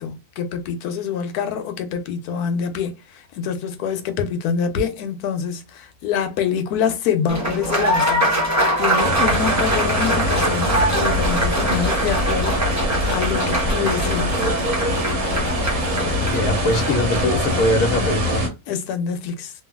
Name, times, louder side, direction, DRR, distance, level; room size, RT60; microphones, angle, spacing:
voice 1, 0.0-8.5 8.8-14.4 18.7-19.5, left 7 dB, 90° left, 1.2 m, -26 dB
Applause, 7.3-17.7, right 1 dB, 15° right, 0.7 m, -23 dB
sound 1, 9.0-18.5, left 1 dB, 65° right, 1.3 m, -23 dB
voice 2, 16.2-18.5, left 1 dB, 65° left, 1.1 m, -22 dB
3.1 x 2.2 x 2.2 m
omnidirectional pair, 1.6 m